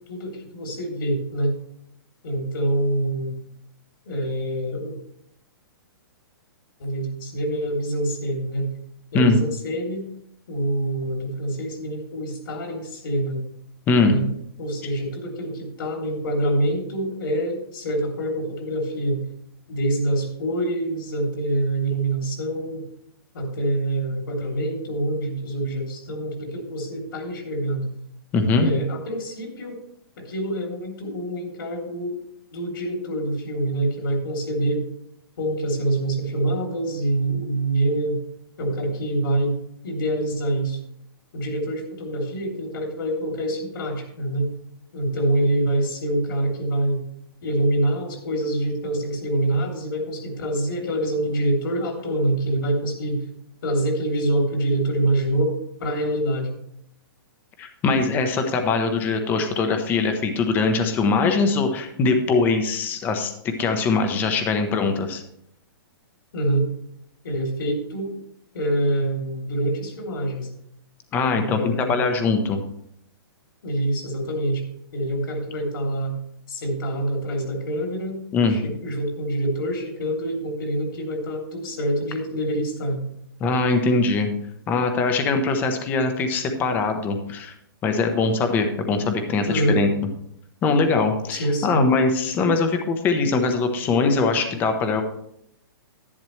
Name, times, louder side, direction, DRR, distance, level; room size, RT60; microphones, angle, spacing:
voice 1, 0.1-1.5 2.2-3.4 4.1-5.0 6.8-8.7 9.1-10.1 10.5-13.4 14.0-14.2 14.6-19.2 19.7-22.9 23.3-27.9 28.6-29.8 30.2-32.2 32.5-34.8 35.4-38.2 38.6-39.5 39.8-40.8 41.3-44.5 44.9-47.0 47.4-53.2 53.6-56.5 66.3-66.6 67.2-68.2 68.5-70.5 71.3-72.1 73.6-74.6 74.9-76.1 76.5-78.2 78.5-83.0 89.4-89.8 91.3-91.8, right 1 dB, 65° left, 2 dB, 3.2 m, -25 dB
voice 2, 28.3-28.7 57.6-63.3 63.6-65.2 71.1-72.6 78.3-78.6 83.4-84.3 84.7-87.5 87.8-89.9 90.6-95.0, left 4 dB, 15° left, 6 dB, 0.9 m, -22 dB
11.0 x 10.0 x 3.2 m, 0.73 s
hypercardioid pair, 165°, 12 cm